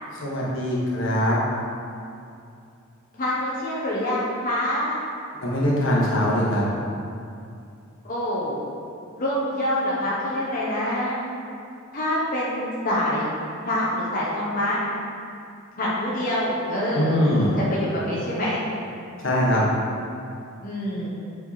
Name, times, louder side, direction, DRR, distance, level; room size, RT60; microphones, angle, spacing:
voice 1, 0.2-1.4 5.4-6.6 16.9-17.6 19.2-19.6, equal, 65° left, -5 dB, 1.6 m, -22 dB
voice 2, 3.2-5.0 8.0-8.6 9.2-11.2 11.9-13.3 13.6-14.8 15.8-18.6 20.6-21.1, left 1 dB, 40° left, -8 dB, 1.3 m, -26 dB
7.6 x 5.1 x 4.2 m, 2.5 s
head